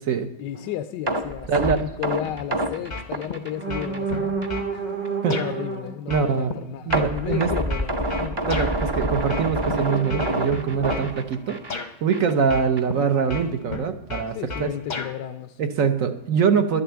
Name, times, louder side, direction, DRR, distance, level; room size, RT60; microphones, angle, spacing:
voice 1, 0.4-4.4 4.7-5.0 5.3-8.4 14.3-15.6, left 11 dB, 75° left, 9 dB, 1.2 m, -33 dB
sound 1, 0.5-0.7 1.7-1.9 3.5-6.0 9.8-11.8, right 5 dB, 75° right, 3.0 m, -31 dB
sound 2, 1.1-4.1 4.4-4.6 5.1-5.2 6.9-11.8 12.1-12.3 12.8-12.9, right 1 dB, 25° right, 0.5 m, -27 dB
voice 2, 1.5-1.8 5.2-5.4 6.1-6.5 6.9-7.5 8.4-11.6 12.0-14.7 15.6-16.8, right 6 dB, 60° right, 8 dB, 1.0 m, -23 dB
sound 3, 2.9-3.4 3.7-4.7 5.3-5.5 6.1-8.7 9.3-9.7 10.1-11.1 11.7-11.9 12.5-13.0 13.3-15.1, left 4 dB, 35° left, 0.7 m, -33 dB
11.5 x 6.8 x 8.7 m, 0.94 s
omnidirectional pair, 1.9 m